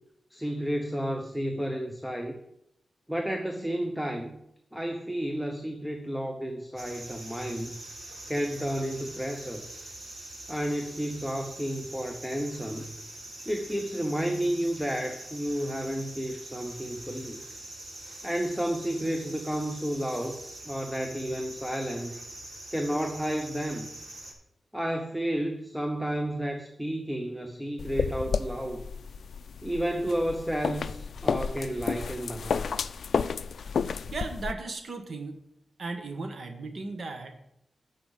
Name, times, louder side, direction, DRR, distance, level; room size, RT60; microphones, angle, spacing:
voice 1, 0.3-2.4 3.1-4.4 4.7-7.8 8.3-9.6 10.5-13.0 13.5-17.4 18.2-20.4 20.6-22.2 22.7-23.9 24.7-28.8 29.6-32.7, equal, ahead, 5 dB, 0.8 m, -31 dB
sound 1, 6.8-24.3, right 1 dB, 35° right, 1.9 m, -44 dB
sound 2, 27.8-34.5, left 6 dB, 75° left, 0.3 m, -31 dB
voice 2, 33.9-35.4 35.8-37.4, right 3 dB, 60° right, 5 dB, 1.3 m, -36 dB
8.3 x 5.1 x 7.5 m, 0.80 s
wide cardioid pair, 100°, 0 cm